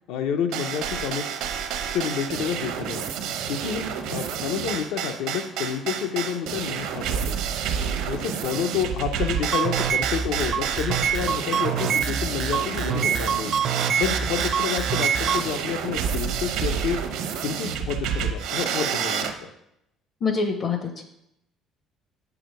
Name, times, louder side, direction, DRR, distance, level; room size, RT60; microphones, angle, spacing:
voice 1, 0.1-1.3 1.8-3.0 3.5-7.4 7.9-13.6 14.0-17.0 17.4-19.5, left 7 dB, 75° left, 6 dB, 0.6 m, -29 dB
sound 1, 0.5-19.3, right 7 dB, 75° right, 0.8 m, -29 dB
sound 2, 9.4-15.4, right 7 dB, 40° right, 0.4 m, -25 dB
voice 2, 20.2-21.0, left 4 dB, 35° left, 6 dB, 0.6 m, -25 dB
6.8 x 4.9 x 6.4 m, 0.82 s
cardioid pair, 165°, 0 cm